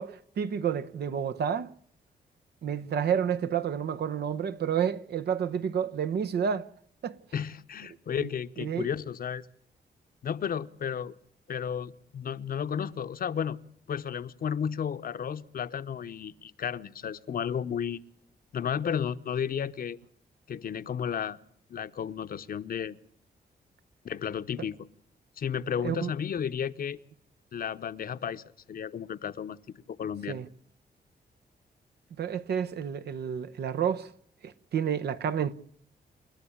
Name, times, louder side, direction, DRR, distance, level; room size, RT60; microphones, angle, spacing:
voice 1, 0.0-1.7 2.6-6.7 7.0-7.2 8.2-8.3 8.6-8.9 25.8-26.1 30.3-30.5 32.2-34.1 34.4-35.5, right 8 dB, 70° right, 0.9 m, -30 dB
voice 2, 7.3-9.4 10.2-11.1 11.5-13.6 13.9-18.0 18.5-20.0 20.5-21.4 21.7-23.0 24.0-24.8 25.4-27.0 27.5-29.6 30.0-30.4, left 8 dB, 60° left, 0.8 m, -33 dB
29.5 x 12.0 x 8.7 m
wide cardioid pair, 125°, 17 cm